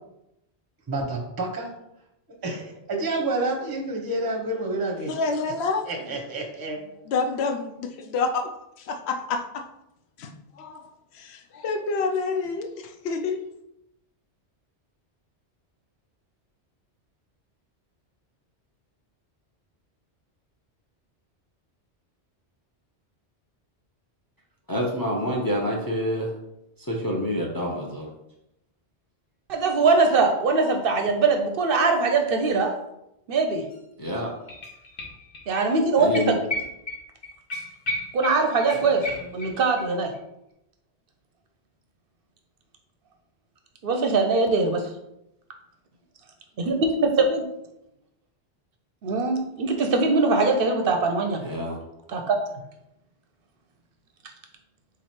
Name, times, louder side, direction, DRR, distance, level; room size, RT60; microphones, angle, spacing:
voice 1, 0.9-1.7 2.4-5.2 5.8-6.8, right 2 dB, 20° right, 1 dB, 0.7 m, -29 dB
voice 2, 5.1-5.9 7.1-9.6 10.2-10.9 11.1-13.4, left 4 dB, 70° left, 5 dB, 0.8 m, -28 dB
voice 3, 24.7-26.3 26.9-28.1 34.0-34.3 36.0-36.3 51.4-51.8, equal, 25° left, -1 dB, 0.5 m, -27 dB
voice 4, 29.5-32.7 33.3-33.6 35.5-36.4 38.1-40.1 43.8-44.9 46.6-47.4 49.0-51.4 52.1-52.4, right 3 dB, 60° right, 4 dB, 0.7 m, -22 dB
sound 1, 33.7-33.8 34.0-35.4 35.7-35.8 36.1-39.8 40.1-40.2, left 1 dB, 50° left, 1.2 m, -34 dB
3.8 x 3.2 x 4.2 m, 0.86 s
omnidirectional pair, 1.2 m